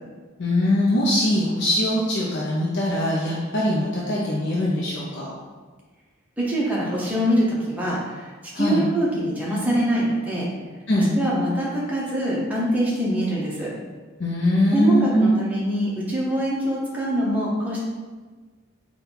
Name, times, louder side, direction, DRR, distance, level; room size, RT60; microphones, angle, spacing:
voice 1, 0.4-5.3 8.5-8.9 10.9-11.1 14.2-15.4, left 1 dB, 55° left, -5 dB, 0.5 m, -22 dB
voice 2, 6.4-8.3 8.5-10.5 11.1-13.7 14.7-17.8, equal, 5° right, -6 dB, 0.8 m, -24 dB
4.1 x 2.3 x 3.9 m, 1.4 s
head